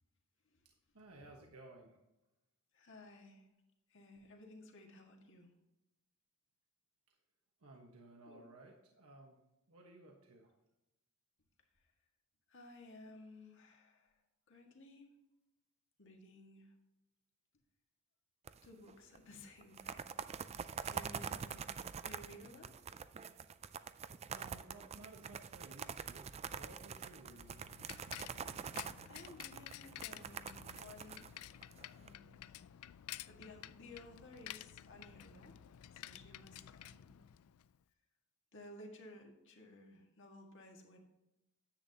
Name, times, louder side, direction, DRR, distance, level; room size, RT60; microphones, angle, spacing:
voice 1, 0.9-2.0 7.1-7.2 7.6-9.4 9.7-10.5 22.4-22.7 24.3-27.6, right 2 dB, 80° right, 1 dB, 1.3 m, -57 dB
voice 2, 2.7-3.5 3.9-5.5 8.2-8.4 12.5-14.2 14.5-15.1 16.0-16.7 18.6-20.6 20.9-22.7 28.3-31.3 31.9-32.4 33.3-35.6 35.9-37.2 38.5-41.0, left 2 dB, 55° left, 2 dB, 1.7 m, -57 dB
sound 1, 18.5-18.9 19.2-19.3 19.6-32.1, right 7 dB, 30° right, 0.3 m, -45 dB
Bicycle, 26.9-37.8, left 12 dB, 75° left, 0.3 m, -52 dB
10.0 x 8.3 x 2.8 m, 0.93 s
head